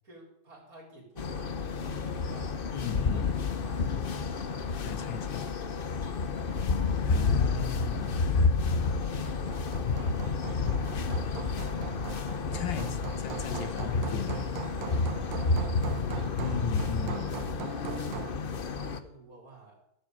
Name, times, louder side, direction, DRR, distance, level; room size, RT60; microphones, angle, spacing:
voice 1, 0.0-2.5 3.0-4.6 5.1-6.6 7.4-8.2 8.8-9.4 9.9-12.2 12.5-13.2 15.3-16.1 16.9-17.2 18.0-19.8, right 2 dB, 45° right, 0 dB, 4.8 m, -52 dB
sound 1, 1.2-19.0, left 4 dB, 50° left, 0.6 m, -30 dB
voice 2, 2.7-3.3 4.8-5.5 7.1-8.2 12.5-14.5 16.4-17.3, left 7 dB, 80° left, 8 dB, 2.0 m, -37 dB
Hammer, 8.8-18.5, right 10 dB, 75° right, 1.5 m, -42 dB
16.5 x 8.0 x 6.8 m, 0.78 s
omnidirectional pair, 2.1 m